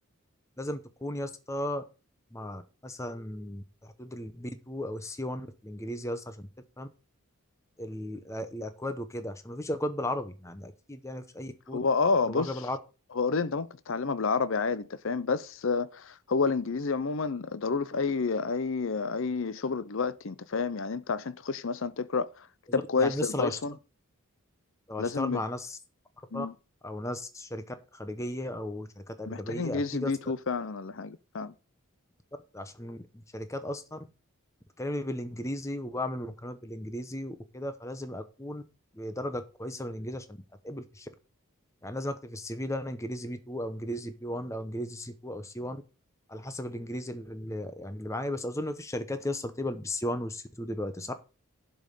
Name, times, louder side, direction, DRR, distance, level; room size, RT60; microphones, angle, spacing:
voice 1, 0.6-1.8 2.3-6.5 6.8-6.9 7.8-11.8 12.3-12.8 22.7-23.6 24.9-25.8 26.3-26.5 26.8-30.1 32.5-33.0 33.3-34.0 34.8-38.6 38.9-40.4 40.6-41.1 41.8-45.8 46.3-51.1, left 1 dB, 15° left, 0.8 m, -35 dB
voice 2, 11.7-12.5 13.1-22.5 22.7-23.7 25.0-25.4 26.3-26.5 29.3-31.5, left 4 dB, 60° left, 0.6 m, -29 dB
11.5 x 5.3 x 6.6 m
head